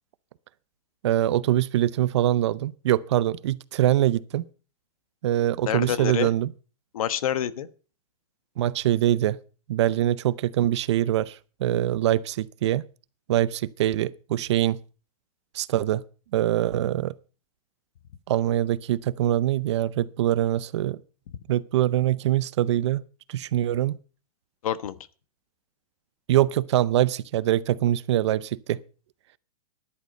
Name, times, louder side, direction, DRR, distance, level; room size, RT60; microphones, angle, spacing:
voice 1, 1.0-4.5 5.2-6.5 8.6-9.4 9.7-12.8 13.3-14.8 15.5-16.0 16.3-17.1 18.3-21.0 21.5-23.0 23.3-24.0 26.3-28.8, right 13 dB, 50° right, 0.7 m, -23 dB
voice 2, 5.6-6.3 6.9-7.7 24.6-25.0, left 10 dB, 65° left, 1.2 m, -27 dB
13.5 x 11.0 x 5.3 m
supercardioid pair, 170°, 19 cm